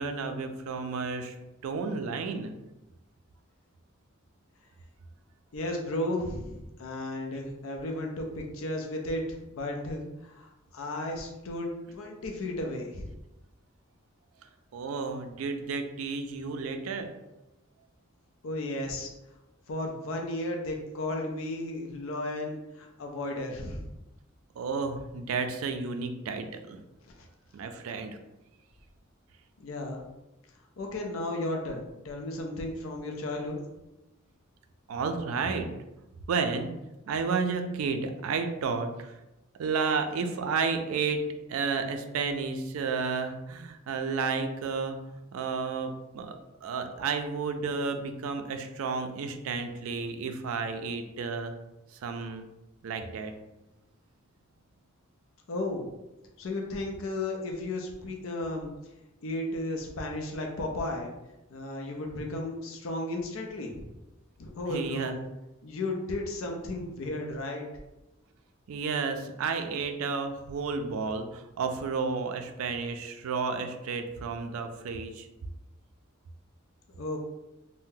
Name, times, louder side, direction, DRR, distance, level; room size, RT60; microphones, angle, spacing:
voice 1, 0.0-1.3 1.6-2.5 14.7-17.1 24.6-26.8 27.5-28.2 34.9-35.7 36.3-36.7 37.1-39.1 39.6-45.0 45.3-51.5 51.9-52.5 52.8-53.3 64.7-65.1 68.7-75.3, right 4 dB, 80° right, 7 dB, 0.4 m, -32 dB
voice 2, 5.5-13.1 18.4-19.1 19.7-23.9 27.2-27.3 29.6-30.0 30.8-33.6 55.5-55.9 56.4-58.7 59.2-61.1 61.5-63.9 64.4-65.2 65.6-67.7 77.0-77.2, left 1 dB, 70° left, 1 dB, 0.5 m, -34 dB
2.7 x 2.1 x 3.7 m, 0.97 s
head